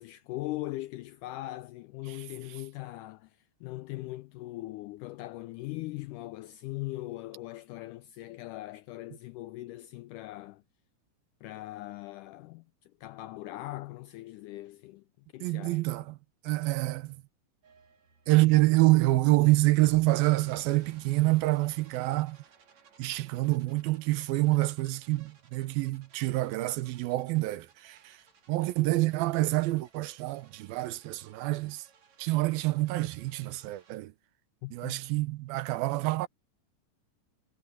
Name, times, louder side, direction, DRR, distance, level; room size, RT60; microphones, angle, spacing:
voice 1, 0.0-10.6 11.4-15.8 34.6-35.0, left 18 dB, 85° left, 1.8 m, -40 dB
voice 2, 15.4-16.2 16.4-17.2 18.3-22.4 23.0-31.9 32.2-34.1 34.7-36.3, right 19 dB, 85° right, 2.7 m, -27 dB
sound 1, 17.6-34.0, right 5 dB, 50° right, 4.2 m, -59 dB
omnidirectional pair, 4.1 m